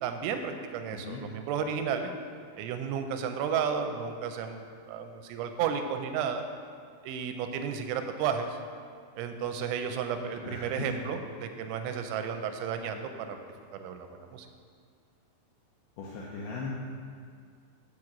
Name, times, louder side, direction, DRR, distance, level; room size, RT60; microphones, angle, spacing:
voice 1, 0.0-2.1 2.6-6.4 7.0-8.6 9.2-13.4 13.7-14.5, right 7 dB, 90° right, 7 dB, 3.1 m, -33 dB
voice 2, 10.4-10.9 16.0-16.7, left 4 dB, 80° left, -4 dB, 2.2 m, -38 dB
8.0 x 4.8 x 7.3 m, 2.2 s
omnidirectional pair, 5.3 m